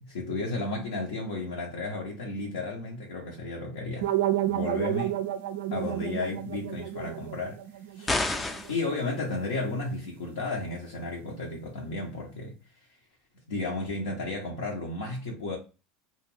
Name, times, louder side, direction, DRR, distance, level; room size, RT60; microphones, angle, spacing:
voice 1, 0.1-4.1 4.4-5.1 5.7-7.6 7.9-8.2 8.7-12.6 13.5-15.6, left 2 dB, 80° left, 0.7 m, -33 dB
sound 1, 4.0-8.9, right 12 dB, 75° right, 0.4 m, -31 dB
sound 2, 8.1-8.8, left 2 dB, 20° left, 0.4 m, -28 dB
2.4 x 2.3 x 3.2 m
hypercardioid pair, 80°, 0 cm